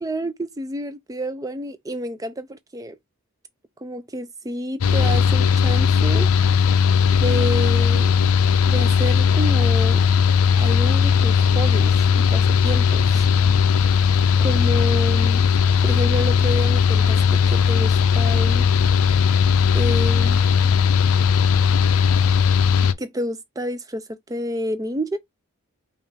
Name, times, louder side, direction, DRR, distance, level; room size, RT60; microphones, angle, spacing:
voice 1, 0.0-3.0 3.8-6.3 7.2-8.2 8.7-10.1 10.5-13.3 14.4-15.4 15.8-18.7 19.7-20.4 23.0-25.2, equal, 15° right, 0.4 m, -29 dB
Mechanical fan, 4.8-22.9, left 6 dB, 80° left, 0.4 m, -18 dB
5.3 x 2.4 x 3.3 m
head